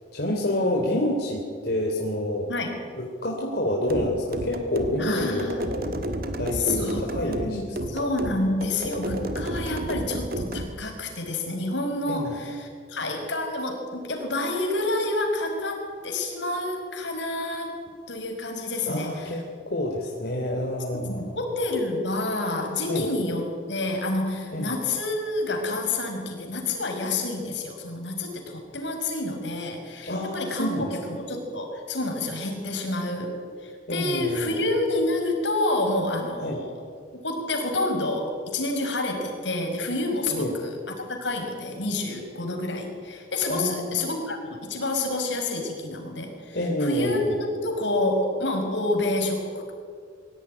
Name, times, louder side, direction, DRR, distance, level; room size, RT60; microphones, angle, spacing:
voice 1, 0.1-2.6 3.0-5.5 6.4-7.6 12.1-12.4 18.9-21.4 22.8-23.1 24.5-24.8 30.1-30.9 33.9-34.5 36.4-36.6 40.3-40.6 43.5-44.1 46.5-47.4, left 1 dB, 55° left, -2 dB, 3.5 m, -28 dB
voice 2, 2.5-2.8 5.0-5.7 6.5-17.8 18.1-19.4 20.9-33.3 33.6-36.7 37.2-40.8 41.1-49.7, left 2 dB, 70° left, 3 dB, 5.6 m, -28 dB
sound 1, 3.9-10.7, right 1 dB, 50° right, 1.8 m, -31 dB
23.5 x 17.0 x 10.0 m, 2.1 s
head